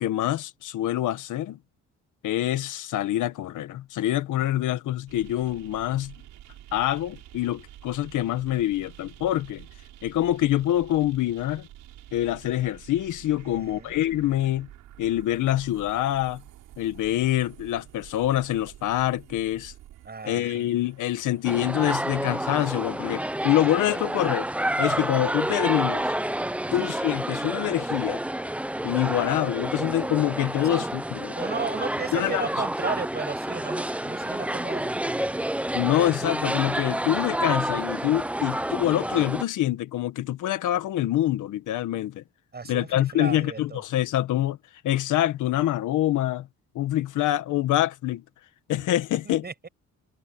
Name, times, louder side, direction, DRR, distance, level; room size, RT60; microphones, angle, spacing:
voice 1, 0.0-1.6 2.2-6.1 6.7-9.6 10.0-11.7 12.1-14.7 15.0-16.4 16.8-19.7 20.2-24.5 24.8-26.1 26.7-28.2 28.8-31.3 32.1-32.5 35.7-42.2 42.7-44.6 44.8-46.5 46.7-48.2 48.7-49.4, left 13 dB, 80° left, 1.7 m, -25 dB
sound 1, 5.1-23.9, right 13 dB, 85° right, 7.7 m, -49 dB
voice 2, 13.4-13.9 20.0-20.7 26.6-26.9 30.6-30.8 31.4-35.3 42.5-43.8 49.2-49.7, right 4 dB, 35° right, 7.8 m, -35 dB
sound 2, 21.4-39.4, right 1 dB, 5° right, 0.9 m, -29 dB
cardioid pair, 90°, 30 cm